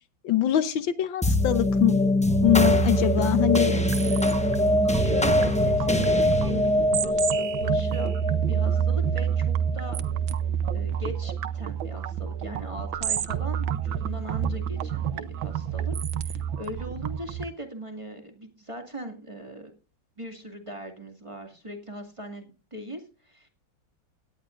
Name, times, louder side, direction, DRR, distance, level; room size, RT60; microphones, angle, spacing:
voice 1, 0.2-2.0 2.4-3.9, left 12 dB, 80° left, 12 dB, 1.7 m, -23 dB
sound 1, 1.2-9.9, left 1 dB, 10° left, 0.4 m, -24 dB
sound 2, 2.4-17.5, right 8 dB, 85° right, 1.6 m, -28 dB
voice 2, 4.0-4.5 4.8-8.1 8.5-10.0 10.7-15.9 16.2-19.7 20.2-23.5, right 1 dB, 15° right, 3 dB, 2.1 m, -39 dB
17.5 x 11.5 x 2.5 m, 0.34 s
omnidirectional pair, 2.1 m